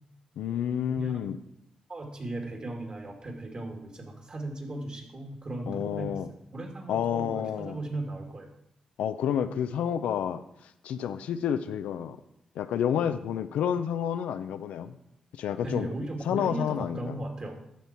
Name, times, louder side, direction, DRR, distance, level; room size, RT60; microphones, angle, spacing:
voice 1, 0.4-1.4 5.7-6.3 6.9-7.8 9.0-12.2 12.6-15.0 15.3-15.9 16.3-17.2, left 9 dB, 85° left, 10 dB, 0.5 m, -30 dB
voice 2, 1.9-6.1 6.5-8.5 15.6-17.6, right 2 dB, 45° right, 2 dB, 2.6 m, -37 dB
11.5 x 7.1 x 4.4 m, 0.78 s
supercardioid pair, 55°, 2 cm